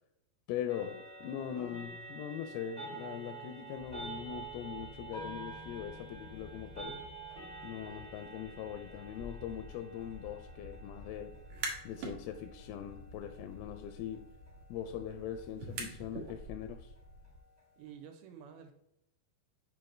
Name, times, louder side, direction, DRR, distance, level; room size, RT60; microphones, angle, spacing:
voice 1, 0.5-7.0 7.6-11.4 11.8-14.3 14.7-16.9, left 9 dB, 85° left, 2.4 m, -41 dB
sound 1, 0.7-17.9, right 3 dB, 25° right, 0.9 m, -49 dB
sound 2, 3.7-17.4, left 2 dB, 35° left, 0.9 m, -53 dB
sound 3, 11.3-12.2 12.6-16.3, right 4 dB, 70° right, 1.4 m, -44 dB
voice 2, 17.8-18.7, right 8 dB, 90° right, 2.6 m, -50 dB
7.0 x 5.1 x 3.2 m
omnidirectional pair, 4.4 m